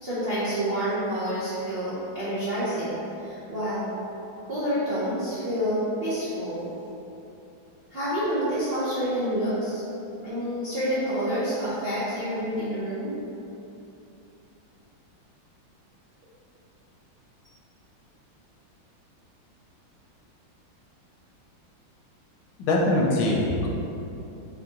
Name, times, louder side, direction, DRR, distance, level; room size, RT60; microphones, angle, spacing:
voice 1, 0.0-3.9 4.4-6.7 7.9-9.8 10.2-13.2, equal, 60° right, -12 dB, 0.6 m, -28 dB
voice 2, 22.6-23.7, left 1 dB, 75° left, -2 dB, 1.3 m, -22 dB
4.1 x 2.9 x 3.6 m, 2.8 s
omnidirectional pair, 2.3 m